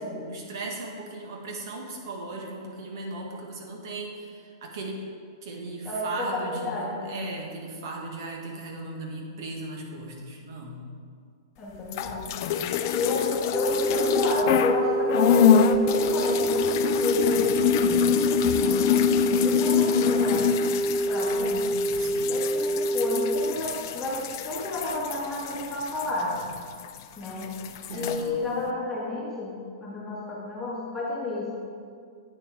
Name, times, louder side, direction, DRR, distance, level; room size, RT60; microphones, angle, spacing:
voice 1, 0.0-5.1 5.4-10.8 18.5-18.8 22.0-22.4 27.9-28.5, right 2 dB, 65° right, 0 dB, 1.9 m, -37 dB
voice 2, 5.8-7.2 11.6-12.3 12.9-18.1 18.5-18.8 19.4-20.5 21.1-21.7 22.3-26.4 27.2-27.5 27.9-29.5 29.8-31.5, left 2 dB, 15° left, -6 dB, 1.9 m, -31 dB
sound 1, 11.8-14.8 15.1-27.0 27.3-28.2, left 8 dB, 55° left, 0.5 m, -26 dB
sound 2, 13.5-23.5, right 1 dB, 5° right, 0.3 m, -27 dB
9.0 x 6.9 x 4.7 m, 2.1 s
hypercardioid pair, 125°, 2 cm